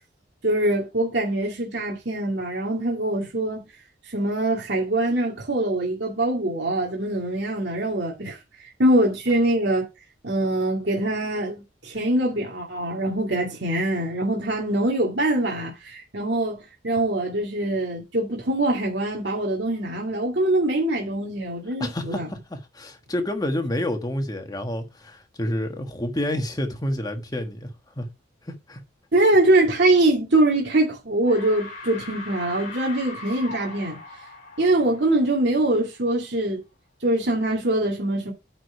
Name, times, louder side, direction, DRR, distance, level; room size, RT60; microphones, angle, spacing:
voice 1, 0.4-3.7 4.1-8.4 8.8-9.9 10.2-22.3 29.1-34.0 34.6-36.6 37.0-38.3, right 1 dB, 60° right, 2.3 m, -23 dB
voice 2, 21.8-27.7 28.0-28.1 28.5-28.8, left 1 dB, 20° left, 1.4 m, -29 dB
sound 1, 30.6-30.9 31.2-35.8, left 3 dB, 45° left, 3.3 m, -40 dB
8.9 x 5.0 x 4.8 m
head